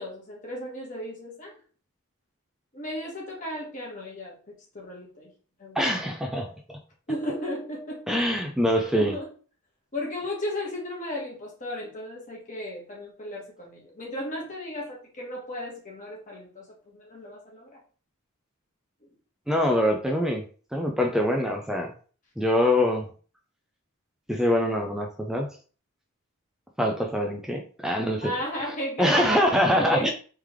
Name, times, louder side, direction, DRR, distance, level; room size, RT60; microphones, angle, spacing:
voice 1, 0.0-1.5 2.7-5.3 5.6-5.8 7.1-8.2 8.9-9.3 9.9-17.8 28.2-30.1, left 1 dB, 35° left, -3 dB, 1.5 m, -35 dB
voice 2, 5.8-6.8 8.1-9.2 19.5-20.4 20.7-21.9 22.4-23.1 24.3-25.5 26.8-28.3 29.0-30.1, left 1 dB, ahead, 2 dB, 0.4 m, -24 dB
3.6 x 3.2 x 3.1 m, 0.40 s
head